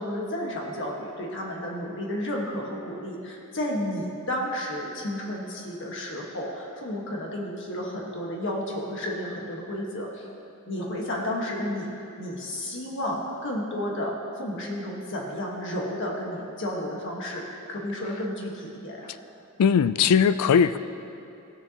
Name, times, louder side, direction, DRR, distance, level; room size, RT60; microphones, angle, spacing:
voice 1, 0.0-10.3 10.7-11.9 12.2-19.1, left 1 dB, 55° left, -2 dB, 1.5 m, -32 dB
voice 2, 19.6-20.8, left 7 dB, 80° left, 13 dB, 0.4 m, -19 dB
16.0 x 6.7 x 2.9 m, 2.8 s
head